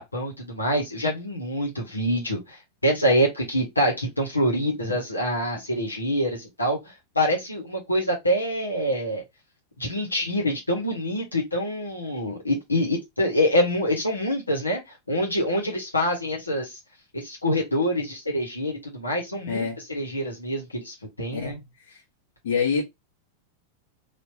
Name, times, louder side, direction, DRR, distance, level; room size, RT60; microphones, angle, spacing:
voice 1, 0.0-9.2 9.8-16.8 17.1-21.6, equal, 80° left, 1.6 m, -26 dB
voice 2, 19.5-19.8 21.3-22.0 22.4-22.8, left 5 dB, 55° left, 1.6 m, -27 dB
4.5 x 2.9 x 2.8 m
figure-of-eight pair, 90°, 0 cm